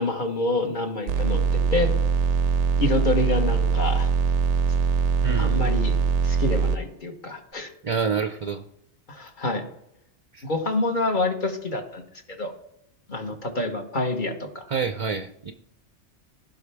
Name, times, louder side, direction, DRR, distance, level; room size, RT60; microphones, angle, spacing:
voice 1, 0.0-1.9 2.8-4.1 5.4-6.0 6.2-7.7 9.1-9.6 10.4-12.0 12.3-12.5 13.1-14.7, left 2 dB, 45° left, 3 dB, 1.4 m, -27 dB
sound 1, 1.1-6.8, right 5 dB, 85° right, 0.9 m, -22 dB
voice 2, 5.2-5.6 7.8-8.6 10.3-10.5 14.7-15.5, right 6 dB, 40° right, 7 dB, 0.5 m, -27 dB
16.0 x 5.7 x 3.4 m, 0.78 s
omnidirectional pair, 1.2 m